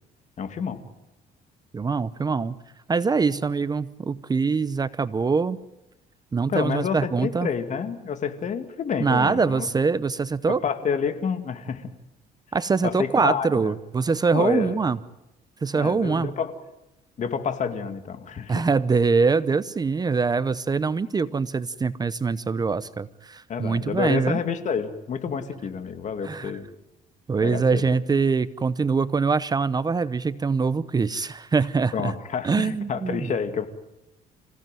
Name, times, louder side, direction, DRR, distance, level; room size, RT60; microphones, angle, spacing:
voice 1, 0.4-0.8 6.5-9.7 10.5-11.9 12.8-13.7 14.3-14.8 15.8-16.5 17.2-18.6 23.5-26.7 27.4-27.9 31.9-33.7, left 6 dB, 45° left, 8 dB, 2.4 m, -29 dB
voice 2, 1.7-2.6 2.9-5.6 6.3-7.5 9.0-10.6 12.5-15.0 15.6-16.3 18.5-24.4 26.2-26.5 27.3-32.1 32.4-33.3, right 4 dB, 25° right, 16 dB, 0.8 m, -23 dB
26.5 x 16.5 x 9.2 m, 0.92 s
cardioid pair, 110°, 17 cm